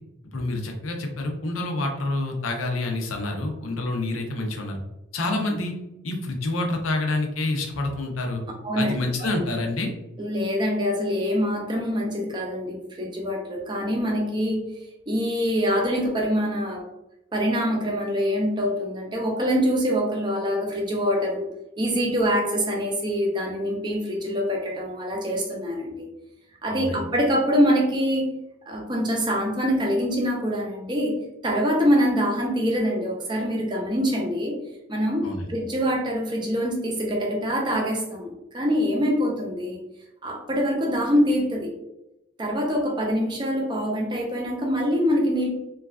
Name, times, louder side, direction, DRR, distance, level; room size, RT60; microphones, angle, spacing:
voice 1, 0.3-4.8 5.1-5.7 6.0-8.4 8.8-9.9 26.7-27.0 35.2-35.5, left 2 dB, 90° left, 3 dB, 0.6 m, -27 dB
voice 2, 8.6-8.9 9.2-9.4 10.2-14.7 15.1-16.9 17.3-21.5 21.8-26.1 26.6-28.3 28.7-31.1 31.4-34.6 34.9-39.8 40.2-41.7 42.4-45.5, equal, 20° right, 0 dB, 0.5 m, -24 dB
3.1 x 2.3 x 2.3 m, 0.92 s
head